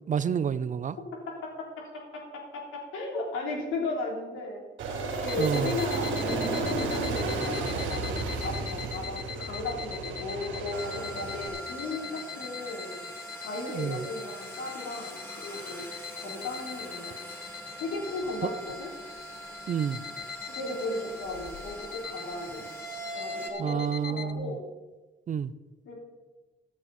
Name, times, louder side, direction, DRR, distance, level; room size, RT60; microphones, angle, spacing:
voice 1, 0.1-1.0 5.4-5.7 13.7-14.0 19.7-20.0 23.6-24.5 25.3-25.5, right 7 dB, 40° right, 17 dB, 0.5 m, -29 dB
voice 2, 1.3-4.6 5.0-8.1 8.4-13.0 13.4-15.8 16.2-17.1 17.8-18.9 20.5-22.6 23.1-24.6 25.8-25.9, left 2 dB, 85° left, -1 dB, 3.6 m, -36 dB
Aircraft, 4.8-11.5, right 3 dB, 75° right, 2.8 m, -32 dB
sound 1, 5.3-24.3, left 8 dB, 50° left, 0.8 m, -43 dB
sound 2, 10.7-23.5, right 1 dB, 10° left, 2.9 m, -42 dB
14.5 x 9.7 x 4.3 m, 1.2 s
cardioid pair, 90°, 20 cm